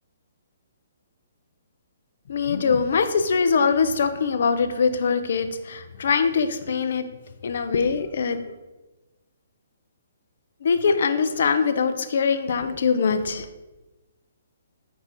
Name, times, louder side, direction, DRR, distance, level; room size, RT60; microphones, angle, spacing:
voice 1, 2.3-7.0 7.4-8.5 10.6-13.5, left 5 dB, 65° left, 10 dB, 0.4 m, -22 dB
4.7 x 2.4 x 4.0 m, 1.1 s
hypercardioid pair, 140°, 0 cm